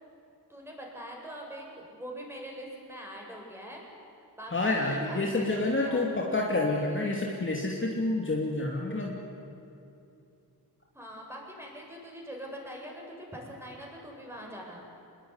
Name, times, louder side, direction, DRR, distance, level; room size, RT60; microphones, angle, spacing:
voice 1, 0.5-3.8 4.3-6.1 10.9-14.8, equal, 5° right, -1 dB, 7.6 m, -43 dB
voice 2, 4.5-9.2, left 2 dB, 30° left, -1 dB, 2.9 m, -28 dB
26.0 x 21.0 x 9.8 m, 2.7 s
wide cardioid pair, 110°, 38 cm